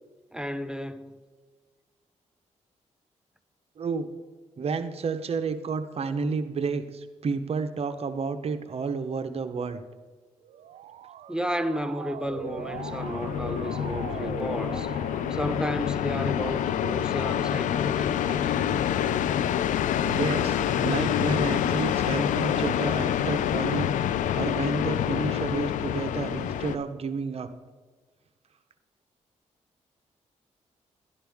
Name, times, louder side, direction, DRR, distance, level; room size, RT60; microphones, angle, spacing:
voice 1, 0.3-1.2 11.3-14.9 15.3-18.4, equal, 5° right, 0.6 m, -33 dB
voice 2, 3.8-4.1 4.6-9.8 20.0-27.5, right 4 dB, 50° right, 0.9 m, -31 dB
Motor vehicle (road) / Siren, 10.4-16.3, right 9 dB, 85° right, 0.5 m, -41 dB
sound 1, 12.3-26.8, left 9 dB, 85° left, 0.5 m, -27 dB
11.5 x 11.0 x 3.5 m
cardioid pair, 70°, 13 cm